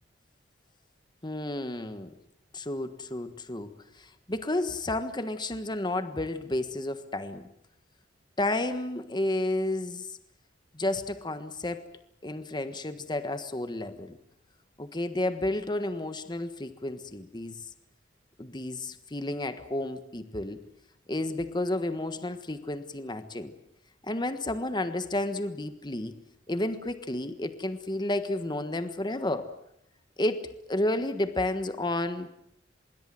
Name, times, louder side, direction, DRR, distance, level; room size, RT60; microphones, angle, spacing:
voice 1, 1.2-2.1 2.5-7.5 8.4-10.1 10.7-11.9 12.2-14.2 14.8-17.6 18.4-20.6 21.1-23.5 24.0-26.1 26.5-29.5 30.2-32.3, left 1 dB, 25° left, 10 dB, 1.4 m, -31 dB
26.0 x 22.0 x 7.7 m, 0.74 s
head